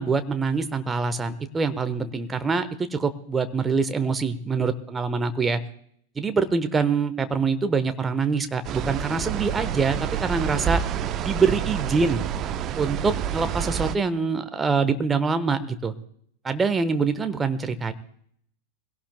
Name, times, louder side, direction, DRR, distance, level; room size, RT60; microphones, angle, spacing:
voice 1, 0.0-5.6 6.2-10.8 11.2-12.2 12.8-15.9 16.4-17.9, right 4 dB, 15° right, 10 dB, 1.1 m, -25 dB
sound 1, 8.6-14.0, right 9 dB, 30° right, 0.8 m, -28 dB
21.5 x 17.0 x 2.2 m, 0.65 s
figure-of-eight pair, 90°, 0 cm